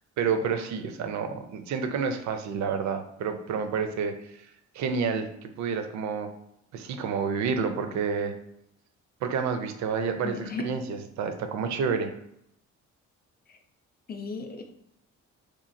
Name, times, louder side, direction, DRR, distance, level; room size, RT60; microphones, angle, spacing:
voice 1, 0.2-4.4 4.7-6.3 6.7-8.3 9.2-12.1, right 6 dB, 70° right, 8 dB, 0.5 m, -29 dB
voice 2, 10.2-10.6 14.1-14.6, left 4 dB, 30° left, 3 dB, 0.5 m, -35 dB
2.9 x 2.4 x 2.6 m, 0.75 s
cardioid pair, 90°, 30 cm